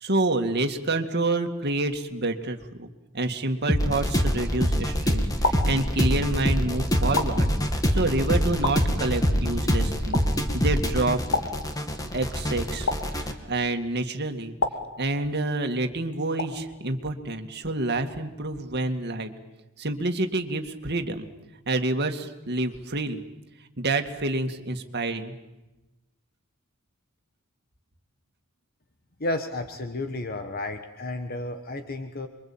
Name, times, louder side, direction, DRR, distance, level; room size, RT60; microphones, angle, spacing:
voice 1, 0.0-2.9 3.1-7.5 7.9-10.2 10.5-11.2 12.1-14.5 15.0-19.3 19.8-21.3 21.7-23.2 23.8-25.3, right 2 dB, 50° right, 6 dB, 2.2 m, -28 dB
sound 1, 3.7-13.3, equal, 15° left, 2.3 m, -25 dB
sound 2, 4.3-4.8 5.4-6.4 7.2-8.0 8.6-9.5 10.1-10.8 11.3-12.2 12.9-13.7 14.6-15.6 16.4-17.0, left 3 dB, 75° left, 2.7 m, -32 dB
voice 2, 29.2-32.3, left 2 dB, 45° left, 7 dB, 1.5 m, -32 dB
28.0 x 23.5 x 8.8 m, 1.0 s
head